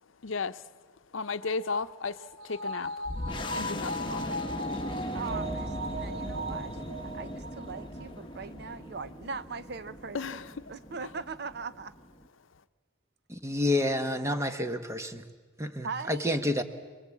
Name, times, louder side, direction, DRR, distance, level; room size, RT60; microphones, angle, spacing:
voice 1, 0.2-0.7 1.1-3.1 3.5-4.6 4.8-5.2 5.9-6.0 10.1-10.7 11.0-11.1, left 4 dB, 80° left, 0.7 m, -35 dB
sound 1, 1.4-8.1 8.4-8.5, right 1 dB, 85° right, 2.6 m, -38 dB
sound 2, 3.1-12.3, left 1 dB, 25° left, 1.1 m, -39 dB
voice 2, 5.1-6.8 7.1-10.2 10.7-11.9 15.8-16.4, right 4 dB, 55° right, 0.7 m, -40 dB
voice 3, 13.3-15.2 15.6-16.6, left 1 dB, 15° right, 1.1 m, -29 dB
26.5 x 21.5 x 8.5 m
head